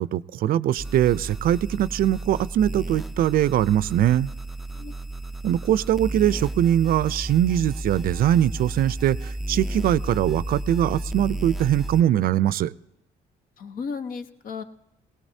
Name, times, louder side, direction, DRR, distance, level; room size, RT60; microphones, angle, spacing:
voice 1, 0.0-4.3 5.4-12.7, right 11 dB, 60° right, 18 dB, 0.5 m, -22 dB
sound 1, 0.8-12.0, right 1 dB, ahead, 0.4 m, -33 dB
voice 2, 13.6-14.6, left 5 dB, 55° left, 8 dB, 1.1 m, -34 dB
20.5 x 18.0 x 2.7 m, 0.83 s
cardioid pair, 110°, 17 cm